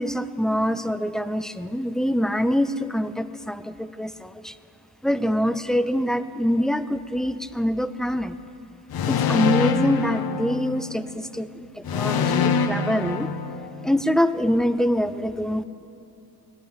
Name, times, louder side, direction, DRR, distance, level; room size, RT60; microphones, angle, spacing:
voice 1, 0.0-4.5 5.0-8.4 9.1-13.3 13.8-15.6, equal, ahead, 13 dB, 0.3 m, -25 dB
sound 1, 8.9-11.1 11.9-14.1, left 6 dB, 70° left, 0.8 m, -25 dB
18.0 x 11.0 x 7.2 m, 2.8 s
wide cardioid pair, 145°, 37 cm